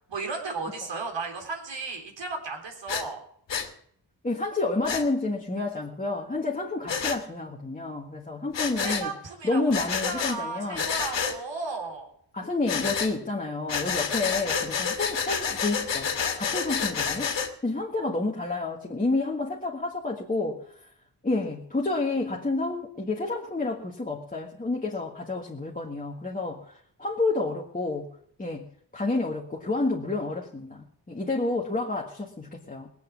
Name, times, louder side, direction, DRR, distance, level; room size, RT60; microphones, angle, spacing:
voice 1, 0.1-3.2 8.8-12.1, right 4 dB, 90° right, 3 dB, 3.8 m, -35 dB
Breathing, 2.9-3.0 3.5-3.7 4.8-5.0 6.9-7.2 8.5-9.1 9.7-10.4 10.7-11.4 12.7-13.1 13.7-17.5, left 6 dB, 80° left, 1.8 m, -29 dB
voice 2, 4.2-9.1 9.4-10.9 12.3-17.3 17.6-20.6 21.2-28.1 28.4-28.7 28.9-32.9, left 3 dB, 20° left, -2 dB, 1.6 m, -29 dB
19.5 x 8.2 x 7.2 m, 0.65 s
wide cardioid pair, 130°, 43 cm